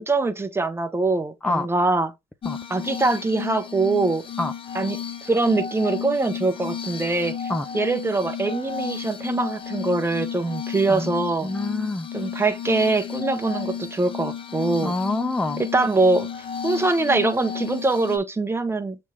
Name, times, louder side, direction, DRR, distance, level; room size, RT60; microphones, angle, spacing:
voice 1, 0.0-2.1 2.7-4.2 4.7-11.5 12.1-14.9 15.6-16.3 16.6-19.0, right 3 dB, 15° right, 0.8 m, -23 dB
Glass, 2.4-18.2, left 8 dB, 30° left, 0.8 m, -33 dB
voice 2, 10.9-12.1 14.8-15.6, left 2 dB, 5° left, 0.4 m, -26 dB
7.0 x 3.2 x 2.2 m
cardioid pair, 110°, 17 cm